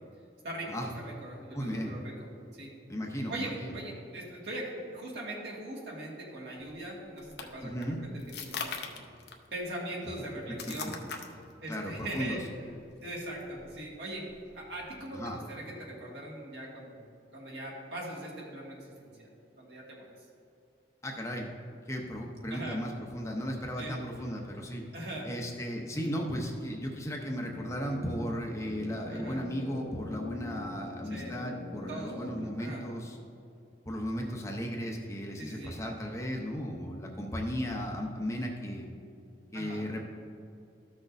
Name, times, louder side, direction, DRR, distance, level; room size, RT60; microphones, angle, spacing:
voice 1, 0.4-2.3 2.5-2.7 3.3-9.0 9.5-11.0 11.6-12.4 13.0-14.3 14.6-17.0 17.3-19.3 19.6-20.1 22.5-22.8 23.8-24.0 24.9-25.3 29.1-29.5 31.1-31.4 31.9-32.8 35.4-35.8 39.5-39.9, right 1 dB, 65° right, -3 dB, 1.8 m, -41 dB
voice 2, 1.5-1.9 2.9-3.7 7.6-8.0 11.7-12.4 15.1-15.4 21.0-21.6 21.9-24.8 25.2-33.2 33.9-38.9 39.5-40.0, equal, 15° left, 0 dB, 0.7 m, -35 dB
sound 1, 6.6-15.2, left 5 dB, 60° left, 0.7 m, -44 dB
sound 2, 27.3-32.4, left 2 dB, 80° left, 1.1 m, -43 dB
13.5 x 6.2 x 2.6 m, 2.5 s
head